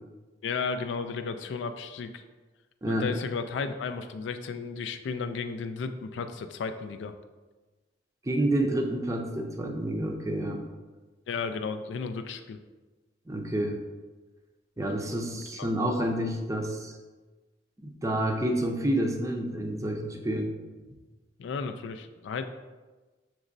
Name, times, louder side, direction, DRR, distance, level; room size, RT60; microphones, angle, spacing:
voice 1, 0.4-2.2 2.9-7.1 11.3-12.6 15.3-15.7 21.4-22.4, left 5 dB, 85° left, 9 dB, 0.3 m, -34 dB
voice 2, 8.2-10.6 13.3-13.8 14.8-17.0 17.8-20.5, right 1 dB, 20° right, 2 dB, 0.5 m, -29 dB
6.2 x 3.0 x 2.6 m, 1.3 s
head